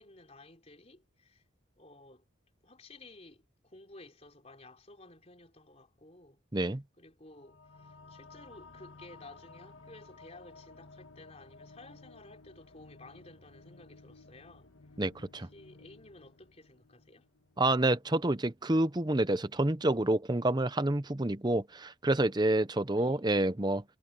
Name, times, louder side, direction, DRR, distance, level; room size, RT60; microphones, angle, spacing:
voice 1, 0.0-1.4 1.8-2.2 2.6-14.7 15.4-17.3 22.9-23.3, left 2 dB, 30° left, 4.2 m, -54 dB
voice 2, 6.5-6.8 15.0-15.5 17.6-23.8, right 1 dB, 20° right, 0.7 m, -28 dB
sound 1, 7.3-18.2, left 3 dB, 70° left, 1.7 m, -55 dB
head